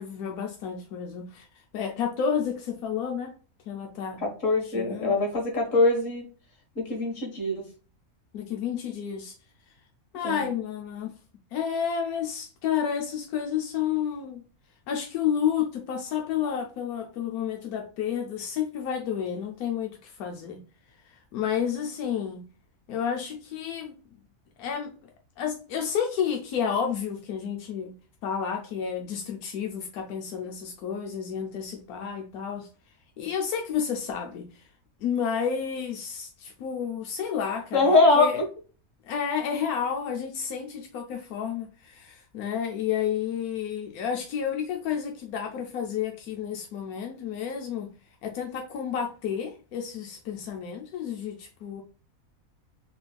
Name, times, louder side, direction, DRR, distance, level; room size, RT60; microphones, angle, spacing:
voice 1, 0.0-3.3 3.7-4.2 4.6-5.2 8.3-9.3 10.1-11.2 11.5-14.4 14.9-20.6 21.0-22.4 22.9-23.9 24.6-25.1 25.4-28.0 28.2-32.7 33.2-34.7 35.0-37.9 38.1-38.4 39.0-47.9 48.2-51.8, left 7 dB, 90° left, 1.2 m, -31 dB
voice 2, 4.2-6.3 6.8-7.6 10.2-10.4 37.7-38.4, left 3 dB, 60° left, 1.8 m, -23 dB
4.3 x 3.4 x 2.3 m
omnidirectional pair, 1.5 m